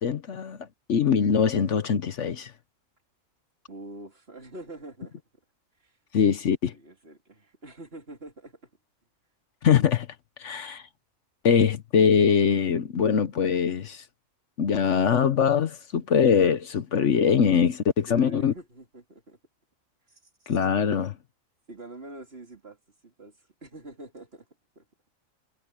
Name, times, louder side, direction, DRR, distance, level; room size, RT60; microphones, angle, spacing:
voice 1, 0.0-0.6 0.9-2.5 6.1-6.7 9.6-10.1 10.4-10.8 11.4-14.0 14.6-18.5 20.5-21.1, left 7 dB, 65° left, 1.2 m, -22 dB
voice 2, 3.7-5.2 5.8-5.9 6.7-8.6 18.1-19.4 20.1-20.6 21.7-22.8 23.0-24.5 24.8-24.9, right 1 dB, 45° right, 3.5 m, -45 dB
omnidirectional pair, 1.4 m